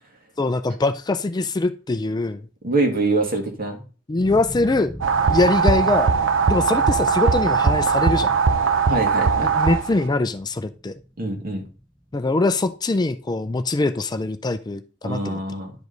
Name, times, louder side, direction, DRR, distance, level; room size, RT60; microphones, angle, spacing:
voice 1, 0.4-2.5 4.1-4.9 5.3-6.1 6.5-8.3 9.4-10.9 12.1-15.4, left 2 dB, 20° left, 10 dB, 0.4 m, -23 dB
voice 2, 2.6-3.8 8.9-9.5 11.2-11.6 15.0-15.7, right 2 dB, 50° right, 3 dB, 1.9 m, -24 dB
sound 1, 4.2-13.0, equal, 5° left, 1.1 m, -41 dB
sound 2, 5.0-10.1, right 5 dB, 85° right, 0.7 m, -20 dB
10.5 x 5.1 x 3.9 m, 0.36 s
head